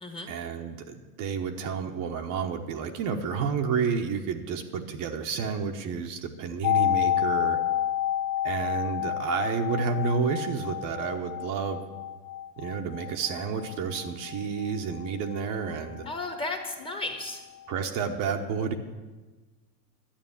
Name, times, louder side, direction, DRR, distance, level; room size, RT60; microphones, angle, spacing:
voice 1, 0.3-7.6 8.4-11.8 12.6-16.0 17.7-18.7, right 6 dB, 40° right, 4 dB, 1.1 m, -30 dB
sound 1, 6.6-16.4 16.6-16.7, left 12 dB, 35° left, 0.4 m, -30 dB
voice 2, 16.0-17.4, left 2 dB, 10° left, 4 dB, 1.4 m, -34 dB
11.5 x 8.9 x 7.1 m, 1.3 s
supercardioid pair, 130°, 47 cm